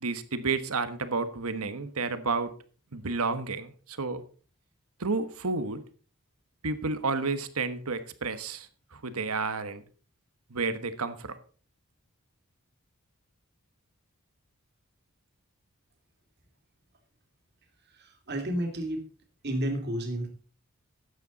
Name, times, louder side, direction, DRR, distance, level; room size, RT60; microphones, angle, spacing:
voice 1, 0.0-2.5 2.9-4.2 5.0-5.8 6.6-9.8 10.5-11.4, right 4 dB, 85° right, 11 dB, 1.3 m, -31 dB
voice 2, 17.9-19.0 19.4-20.3, right 1 dB, 50° right, 4 dB, 2.6 m, -31 dB
13.0 x 9.2 x 4.0 m, 0.39 s
head